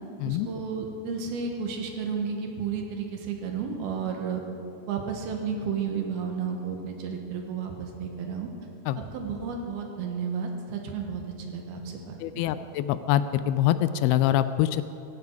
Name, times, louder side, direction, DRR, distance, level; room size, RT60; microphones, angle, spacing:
voice 1, 0.2-4.4 4.9-8.5 9.0-11.2 11.5-12.2 12.6-12.7, right 6 dB, 75° right, 3 dB, 3.4 m, -32 dB
voice 2, 12.2-14.8, left 12 dB, 85° left, 13 dB, 2.4 m, -24 dB
18.0 x 15.0 x 4.8 m, 3.0 s
omnidirectional pair, 4.5 m